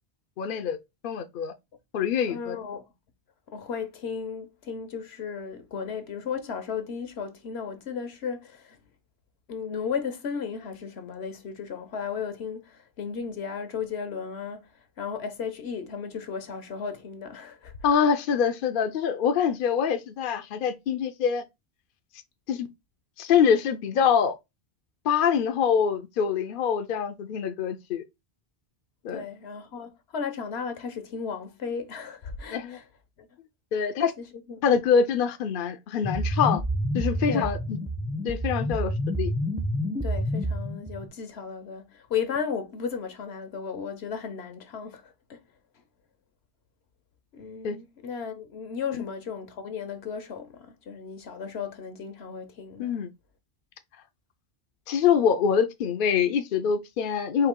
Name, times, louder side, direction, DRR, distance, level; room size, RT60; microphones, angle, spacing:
voice 1, 0.4-0.8 1.0-1.5 1.9-2.6 17.8-21.4 22.5-22.7 23.2-24.4 25.0-28.0 29.0-29.2 32.5-32.8 33.7-34.1 34.6-36.6 36.9-37.8 38.2-39.3 47.6-47.8 48.9-49.0 52.8-53.1 54.9-57.5, left 7 dB, 60° left, 0.7 m, -25 dB
voice 2, 2.3-2.8 3.5-8.8 9.5-14.7 15.0-17.7 29.1-32.8 33.2-33.3 33.8-33.9 34.2-34.7 37.3-37.6 40.0-45.4 47.3-52.9, left 6 dB, 80° left, 1.1 m, -35 dB
sound 1, 36.0-41.1, equal, 5° right, 0.5 m, -28 dB
4.6 x 2.8 x 3.6 m
omnidirectional pair, 1.1 m